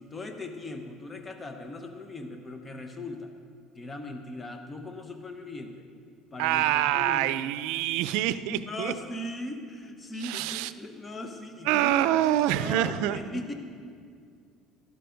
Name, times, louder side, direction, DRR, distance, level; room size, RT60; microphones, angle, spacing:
voice 1, 0.0-3.3 3.7-5.9 6.3-7.5 8.7-12.2 12.6-13.5, left 2 dB, 20° left, 5 dB, 1.0 m, -39 dB
voice 2, 6.4-8.9 10.2-10.7 11.6-13.4, right 13 dB, 80° right, 14 dB, 0.5 m, -26 dB
12.5 x 11.5 x 5.2 m, 2.3 s
cardioid pair, 130°, 0 cm